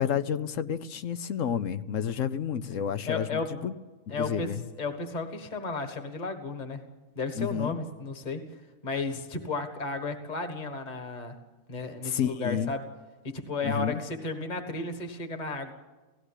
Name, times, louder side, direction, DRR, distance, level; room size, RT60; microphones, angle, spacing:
voice 1, 0.0-3.7 4.1-4.6 7.4-7.8 12.0-12.7 13.6-14.0, left 8 dB, 70° left, 13 dB, 1.2 m, -30 dB
voice 2, 3.0-3.5 4.1-6.8 7.2-8.4 8.8-11.4 11.7-12.8 13.2-15.7, left 3 dB, 35° left, 6 dB, 1.6 m, -33 dB
17.5 x 16.0 x 9.9 m, 1.2 s
omnidirectional pair, 1.4 m